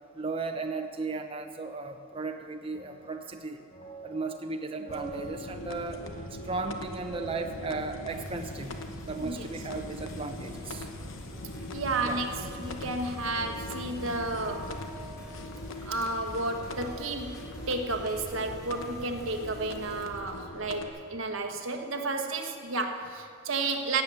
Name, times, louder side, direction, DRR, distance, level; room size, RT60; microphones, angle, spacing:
voice 1, 0.1-3.6 4.0-6.0 6.4-8.8 9.0-10.9 12.0-12.2, right 3 dB, 30° right, 4 dB, 0.7 m, -35 dB
sound 1, 2.6-21.2, right 2 dB, 45° left, 2.6 m, -49 dB
sound 2, 4.9-20.9, left 1 dB, 90° left, 1.0 m, -41 dB
sound 3, 8.1-20.1, equal, 15° left, 2.9 m, -48 dB
voice 2, 9.2-9.5 11.7-12.3 12.6-14.8 15.8-24.0, right 2 dB, 85° right, 5 dB, 1.3 m, -32 dB
17.0 x 8.3 x 6.9 m, 2.4 s
head